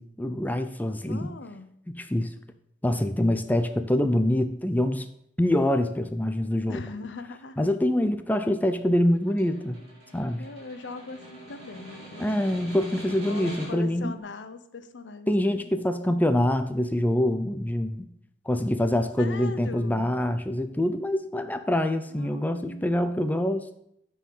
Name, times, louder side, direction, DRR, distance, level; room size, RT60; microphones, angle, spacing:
voice 1, 0.0-1.3 1.9-2.3 2.8-5.0 5.4-6.8 7.6-9.8 10.1-10.4 12.2-14.1 15.3-18.0 18.5-23.7, left 1 dB, 10° left, 9 dB, 0.5 m, -25 dB
voice 2, 1.1-1.7 6.7-7.7 9.3-9.8 10.3-12.5 13.3-15.8 19.2-20.1 22.1-23.0, left 3 dB, 80° left, 11 dB, 0.7 m, -41 dB
Snare drum, 9.1-14.0, equal, 35° right, 3.8 m, -42 dB
9.2 x 4.7 x 5.4 m, 0.74 s
head